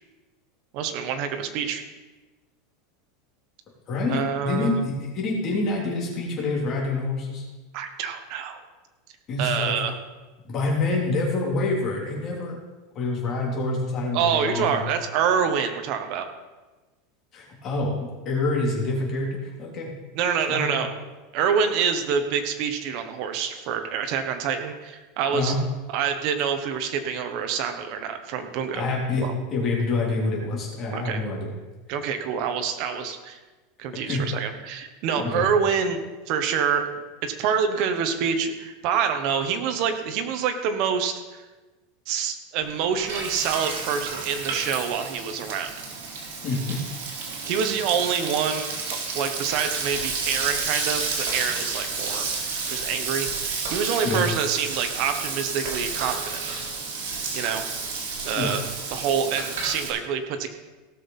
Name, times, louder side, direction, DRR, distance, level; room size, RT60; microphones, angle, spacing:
voice 1, 0.7-1.8 4.1-4.8 7.7-8.6 9.4-9.9 14.1-16.3 20.1-20.9 21.3-25.5 25.9-28.9 29.2-29.3 30.9-31.2 31.9-33.4 33.8-36.0 36.3-36.9 37.2-41.4 42.1-45.7 47.4-52.3 52.7-56.4 57.3-57.6 58.2-58.6 58.9-60.5, right 7 dB, 45° right, 6 dB, 1.3 m, -26 dB
voice 2, 3.9-7.4 9.3-9.7 10.4-12.6 12.9-14.8 17.3-17.9 18.2-19.9 20.5-20.9 25.3-25.6 28.7-29.2 29.5-31.6 34.1-34.2 35.2-35.4 46.4-46.8 54.0-54.2 58.3-58.6, left 2 dB, 25° left, -3 dB, 3.3 m, -27 dB
Frying (food), 42.6-59.9, right 4 dB, 75° right, 3.4 m, -31 dB
17.0 x 6.3 x 5.6 m, 1.2 s
supercardioid pair, 170°, 0 cm